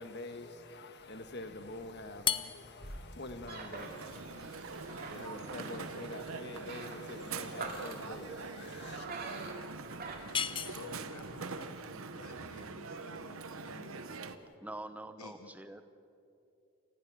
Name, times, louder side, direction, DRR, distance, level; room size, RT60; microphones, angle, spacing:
voice 1, 0.0-9.1, left 2 dB, 50° left, 1.4 m, -46 dB
sound 1, 1.0-11.3, right 3 dB, 45° right, 2.4 m, -47 dB
sound 2, 2.2-14.6, left 8 dB, 25° left, 0.5 m, -42 dB
Crowd, 3.8-14.4, right 4 dB, 75° right, 1.0 m, -43 dB
voice 2, 10.6-14.0 15.2-15.5, left 3 dB, 85° left, 1.0 m, -52 dB
voice 3, 14.6-15.8, right 1 dB, 5° right, 0.8 m, -45 dB
29.0 x 14.5 x 6.3 m
head